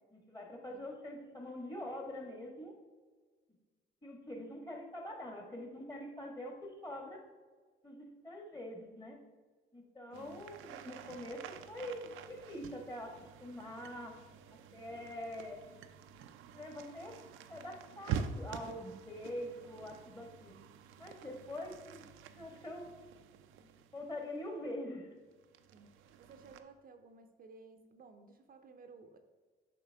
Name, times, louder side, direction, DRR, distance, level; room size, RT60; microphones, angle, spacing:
voice 1, 0.1-2.7 4.0-7.2 7.8-9.2 9.7-14.2 14.7-15.6 16.5-17.2 17.5-20.6 21.0-22.0 22.4-22.9 23.9-25.1, left 1 dB, 20° left, 2 dB, 1.5 m, -44 dB
sound 1, 10.1-24.6 25.3-26.6, right 7 dB, 90° right, 0.5 m, -47 dB
voice 2, 21.2-21.5 25.7-29.2, right 4 dB, 45° right, 6 dB, 0.6 m, -57 dB
7.4 x 5.2 x 3.4 m, 1.5 s
cardioid pair, 90°, 20 cm